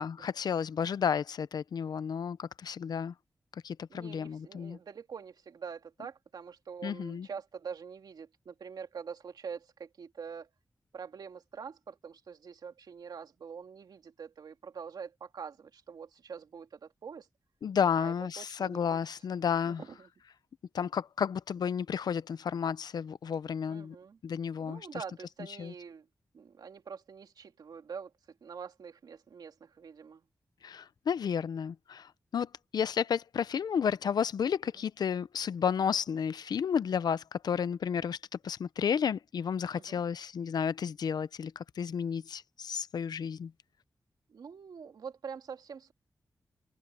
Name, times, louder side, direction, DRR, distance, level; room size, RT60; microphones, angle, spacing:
voice 1, 0.0-3.1 3.6-4.8 6.8-7.3 17.6-19.8 20.7-24.0 24.2-25.0 25.6-25.7 30.6-38.2 38.4-43.5, left 7 dB, 90° left, 0.6 m, -32 dB
voice 2, 3.9-10.5 10.9-17.3 17.9-19.0 19.8-20.1 23.7-24.2 24.6-26.1 26.3-28.1 28.4-30.2 39.7-40.0 44.3-45.9, right 6 dB, 90° right, 2.7 m, -45 dB
wide cardioid pair, 160°, 7 cm